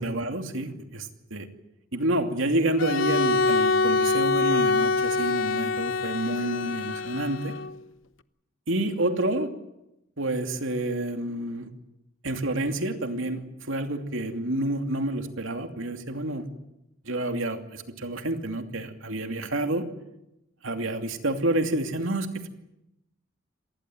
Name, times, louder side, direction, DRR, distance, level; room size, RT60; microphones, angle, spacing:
voice 1, 0.0-1.5 1.9-7.5 8.7-9.5 10.2-11.7 12.2-16.5 17.0-19.9 20.6-22.5, right 1 dB, 75° right, 5 dB, 2.7 m, -29 dB
Bowed string instrument, 2.8-7.8, left 3 dB, 70° left, 0.9 m, -25 dB
26.5 x 19.5 x 7.8 m, 0.88 s
head